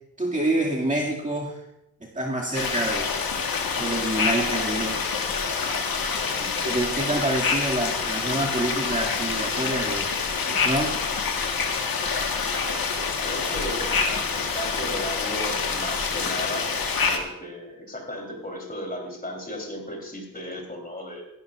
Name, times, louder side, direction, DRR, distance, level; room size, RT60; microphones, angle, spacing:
voice 1, 0.2-1.5 2.0-3.1 3.8-5.0 6.6-10.1 10.5-10.9, right 1 dB, 20° right, -4 dB, 2.3 m, -27 dB
sound 1, 2.5-17.2, left 5 dB, 65° left, 1.6 m, -26 dB
voice 2, 13.2-14.0 14.3-16.8 17.1-21.2, equal, 25° left, 1 dB, 3.5 m, -35 dB
17.0 x 12.0 x 2.5 m, 0.87 s
cardioid pair, 65°, 37 cm